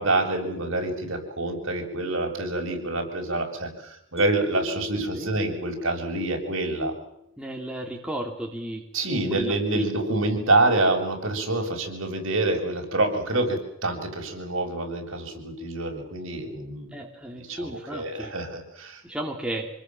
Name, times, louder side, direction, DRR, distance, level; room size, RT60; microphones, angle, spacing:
voice 1, 0.0-6.9 8.9-17.0 17.4-19.0, right 2 dB, 60° right, 2 dB, 7.5 m, -27 dB
Mallet percussion, 4.2-7.4, left 3 dB, 30° right, 2.8 m, -40 dB
voice 2, 7.4-8.9 9.3-10.2 16.9-18.3 19.0-19.7, right 1 dB, 5° right, 0 dB, 2.9 m, -34 dB
27.5 x 20.5 x 7.6 m, 0.77 s
head